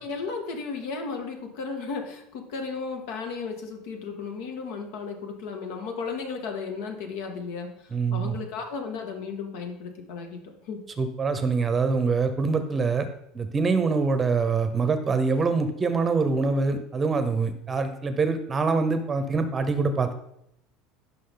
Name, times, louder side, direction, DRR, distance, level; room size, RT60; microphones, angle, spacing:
voice 1, 0.0-10.8, left 4 dB, 75° left, 3 dB, 2.2 m, -34 dB
voice 2, 7.9-8.4 11.0-13.1 13.3-20.1, right 4 dB, 15° right, 9 dB, 0.8 m, -24 dB
16.0 x 6.1 x 3.9 m, 0.75 s
cardioid pair, 160°, 0 cm